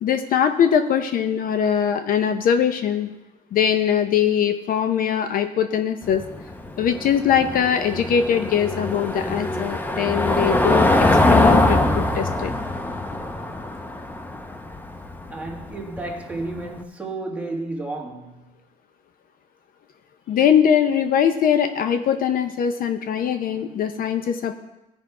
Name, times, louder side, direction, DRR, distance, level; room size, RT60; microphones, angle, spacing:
voice 1, 0.0-3.1 3.5-6.2 6.8-12.5 20.3-24.5, left 8 dB, 55° left, 0.6 m, -21 dB
Car passing by / Engine, 6.0-16.7, left 2 dB, 10° left, 0.7 m, -22 dB
voice 2, 15.3-18.5, right 2 dB, 10° right, 1.6 m, -32 dB
15.5 x 5.2 x 4.7 m
cardioid pair, 110°, 17 cm